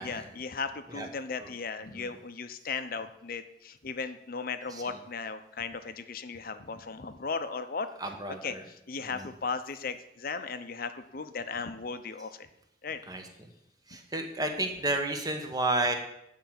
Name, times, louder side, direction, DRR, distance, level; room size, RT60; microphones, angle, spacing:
voice 1, 0.0-7.9 8.4-12.5 12.8-13.0, left 4 dB, 55° left, 10 dB, 0.7 m, -36 dB
voice 2, 8.0-8.6 9.1-9.3 13.1-13.2 13.9-15.9, right 2 dB, 20° right, 5 dB, 1.1 m, -32 dB
9.4 x 4.6 x 7.6 m, 0.82 s
head